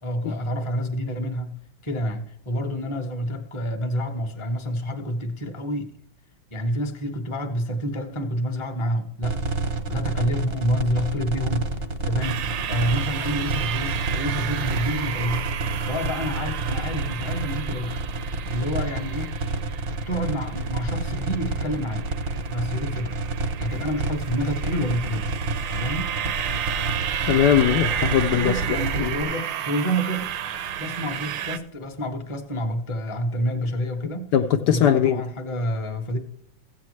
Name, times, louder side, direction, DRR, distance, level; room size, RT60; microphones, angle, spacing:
voice 1, 0.0-1.6 1.8-5.9 6.5-9.4 9.7-11.7 12.0-15.5 15.8-18.0 18.5-19.3 20.1-22.1 22.5-23.2 23.6-25.4 25.7-26.4 28.4-30.3 30.8-34.3 34.7-36.2, equal, 20° left, 0.8 m, -28 dB
sound 1, 9.2-29.2, right 3 dB, 45° right, 0.8 m, -29 dB
sound 2, 12.2-31.6, right 10 dB, 80° right, 1.4 m, -32 dB
voice 2, 27.3-28.5 29.0-29.2 34.3-35.3, left 10 dB, 70° left, 1.1 m, -20 dB
15.0 x 8.3 x 3.1 m
omnidirectional pair, 2.0 m